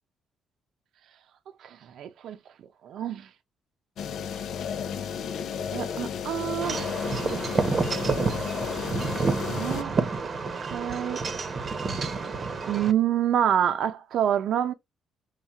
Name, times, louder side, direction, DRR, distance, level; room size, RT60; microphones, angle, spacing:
voice 1, 1.6-2.4 2.8-3.3 5.7-6.9 9.2-10.0 10.6-11.3 12.7-14.7, right 9 dB, 70° right, 0.6 m, -27 dB
sound 1, 4.0-9.8, left 7 dB, 70° left, 0.5 m, -33 dB
Wind chime / Wind, 6.6-12.9, right 4 dB, 40° right, 0.9 m, -29 dB
5.7 x 2.3 x 3.5 m
cardioid pair, 90°, 0 cm